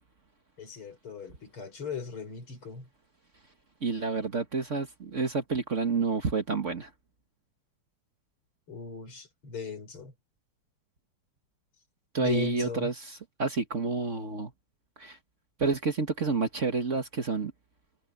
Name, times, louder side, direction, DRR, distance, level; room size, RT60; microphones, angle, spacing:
voice 1, 0.6-2.9 8.7-10.1 12.2-12.9, left 5 dB, 80° left, 6.2 m, -38 dB
voice 2, 3.8-6.9 12.1-14.5 15.0-15.2 15.6-17.5, right 4 dB, 40° right, 1.7 m, -29 dB
omnidirectional pair, 2.3 m